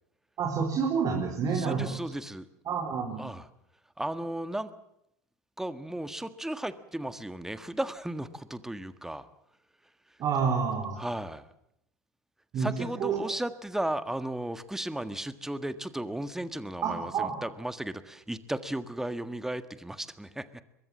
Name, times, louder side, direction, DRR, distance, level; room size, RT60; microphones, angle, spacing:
voice 1, 0.4-1.9 2.7-3.2 10.2-11.0 12.5-13.2 16.8-17.4, right 6 dB, 40° right, 2 dB, 4.7 m, -29 dB
voice 2, 1.5-2.4 3.2-3.5 4.0-4.7 5.6-9.3 11.0-11.5 12.6-20.5, right 1 dB, 5° right, 12 dB, 1.6 m, -35 dB
23.0 x 22.5 x 7.5 m, 0.77 s
hypercardioid pair, 85°, 9 cm